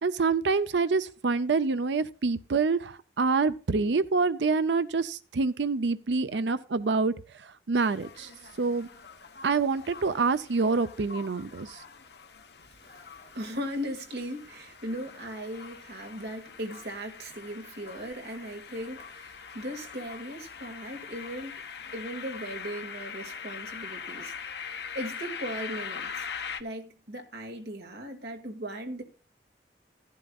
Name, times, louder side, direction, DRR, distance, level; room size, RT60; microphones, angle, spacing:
voice 1, 0.0-8.3 8.6-8.9 9.4-11.8, right 4 dB, 80° right, 0.6 m, -26 dB
sound 1, 7.7-26.6, left 6 dB, 65° left, 1.1 m, -42 dB
voice 2, 12.9-21.6 21.9-24.3 24.9-26.1 26.6-29.0, equal, 65° right, 2.1 m, -38 dB
15.5 x 11.5 x 2.4 m
head